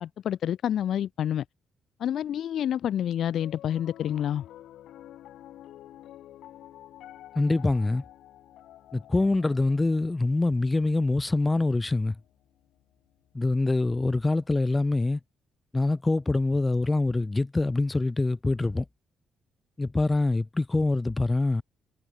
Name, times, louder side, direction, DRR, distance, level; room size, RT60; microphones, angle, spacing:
voice 1, 0.0-1.4 2.0-4.4, left 10 dB, 60° left, 0.6 m, -28 dB
Piano, 3.3-13.7, left 13 dB, 80° left, 2.7 m, -50 dB
voice 2, 7.4-8.0 8.9-12.2 13.3-15.2 15.7-18.8 19.8-21.6, left 2 dB, 15° left, 0.4 m, -25 dB
cardioid pair, 145°, 0 cm